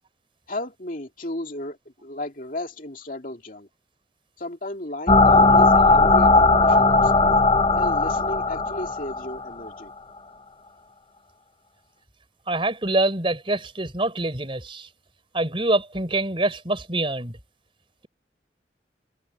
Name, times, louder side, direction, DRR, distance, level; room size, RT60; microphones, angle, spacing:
voice 1, 0.5-3.7 4.4-7.3 7.7-9.9, left 1 dB, 50° left, 2.6 m, -34 dB
sound 1, 5.1-9.7, left 3 dB, 30° left, 0.8 m, -17 dB
voice 2, 12.5-14.9 15.3-17.4, right 2 dB, 30° right, 4.4 m, -25 dB
head